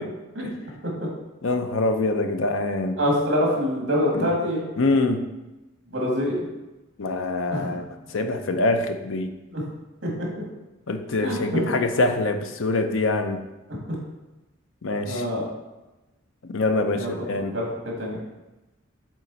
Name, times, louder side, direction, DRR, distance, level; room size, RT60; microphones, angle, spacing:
voice 1, 1.4-3.0 4.1-4.4 4.8-5.3 7.0-7.8 8.1-9.3 10.9-13.4 14.8-15.3 16.4-17.6, left 2 dB, 75° left, 7 dB, 0.6 m, -24 dB
voice 2, 3.0-4.6 5.9-6.4 7.5-7.7 9.5-9.6 10.0-10.1 11.2-11.4 15.1-15.4 17.0-17.2 17.5-17.7 18.0-18.2, equal, 65° right, -3 dB, 2.0 m, -24 dB
7.3 x 3.8 x 4.0 m, 1.1 s
head